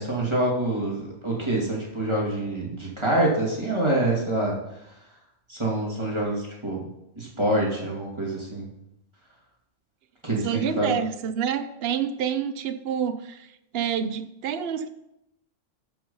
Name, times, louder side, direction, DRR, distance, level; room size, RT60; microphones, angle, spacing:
voice 1, 0.0-4.5 5.5-6.8 7.2-8.7 10.2-10.9, right 1 dB, 20° right, -3 dB, 2.5 m, -26 dB
voice 2, 10.4-13.5 13.7-14.9, right 8 dB, 55° right, 10 dB, 0.9 m, -28 dB
13.5 x 5.5 x 5.5 m, 0.84 s
omnidirectional pair, 1.3 m